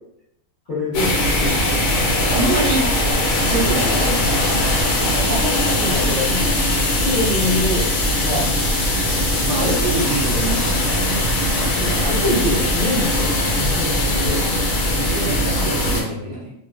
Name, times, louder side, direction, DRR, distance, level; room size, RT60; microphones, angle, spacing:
voice 1, 0.7-1.7 5.2-6.6 7.0-7.9 8.2-8.5 9.5-10.0 11.6-14.4 16.3-16.4, left 1 dB, 40° left, -11 dB, 0.7 m, -25 dB
sound 1, 0.9-16.0, left 1 dB, 80° left, 1.0 m, -20 dB
voice 2, 1.4-2.8 3.4-4.5 8.2-8.4 9.4-11.3 14.8-16.5, right 2 dB, 55° right, -3 dB, 0.7 m, -26 dB
2.4 x 2.2 x 2.3 m, 0.79 s
omnidirectional pair, 1.4 m